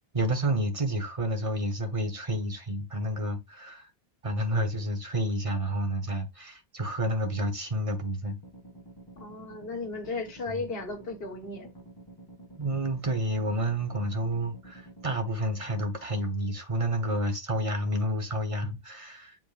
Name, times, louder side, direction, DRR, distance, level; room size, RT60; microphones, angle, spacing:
voice 1, 0.1-3.9 4.2-8.4 10.5-10.6 12.6-19.4, right 1 dB, 35° right, 1.3 m, -30 dB
sound 1, 8.4-15.2, right 2 dB, 20° left, 1.5 m, -50 dB
voice 2, 9.2-11.7, left 3 dB, 70° left, 1.7 m, -35 dB
7.7 x 5.1 x 2.5 m
omnidirectional pair, 1.0 m